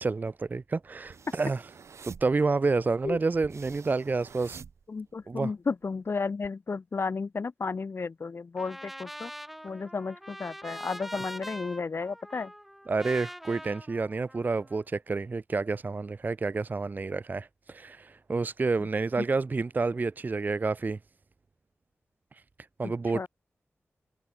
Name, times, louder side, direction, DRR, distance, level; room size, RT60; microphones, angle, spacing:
voice 1, 0.0-1.6 2.0-4.6 5.3-5.5 11.1-11.2 12.9-21.0 22.8-23.3, right 3 dB, 40° right, 0.3 m, -29 dB
sound 1, 1.0-5.4 5.8-6.5, right 6 dB, 85° right, 5.0 m, -48 dB
voice 2, 4.9-9.3 9.6-12.5 19.2-19.3 22.8-23.3, left 4 dB, 55° left, 0.6 m, -33 dB
Trumpet, 8.6-14.8, equal, 5° right, 2.4 m, -43 dB
cardioid pair, 55°, 5 cm